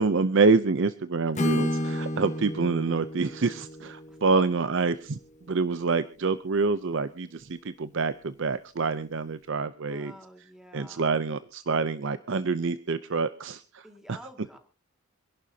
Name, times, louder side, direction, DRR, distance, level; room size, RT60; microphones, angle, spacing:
voice 1, 0.0-5.2 5.5-10.1 10.7-14.2, right 4 dB, 60° right, 12 dB, 0.6 m, -26 dB
Acoustic guitar / Strum, 1.3-5.3, left 1 dB, 35° left, 1.3 m, -32 dB
voice 2, 4.1-4.4 9.9-11.1 13.8-14.6, left 1 dB, ahead, 4 dB, 2.1 m, -47 dB
26.5 x 11.5 x 2.8 m, 0.37 s
head